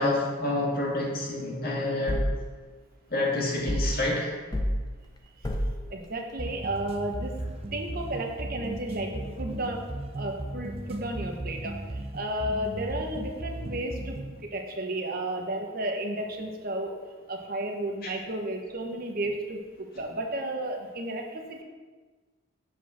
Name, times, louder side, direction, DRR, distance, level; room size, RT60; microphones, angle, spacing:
voice 1, 0.0-2.2 3.1-4.3, left 2 dB, 45° left, -3 dB, 1.9 m, -28 dB
sound 1, 2.1-2.4 3.7-4.0 4.5-4.8 5.4-5.8, equal, 20° left, 0.7 m, -27 dB
voice 2, 5.9-7.5 7.7-9.9 10.1-17.0 17.3-21.6, right 1 dB, 45° right, 2 dB, 1.0 m, -33 dB
sound 2, 6.4-14.4, right 1 dB, 30° right, 0.5 m, -36 dB
8.1 x 4.5 x 6.1 m, 1.4 s
head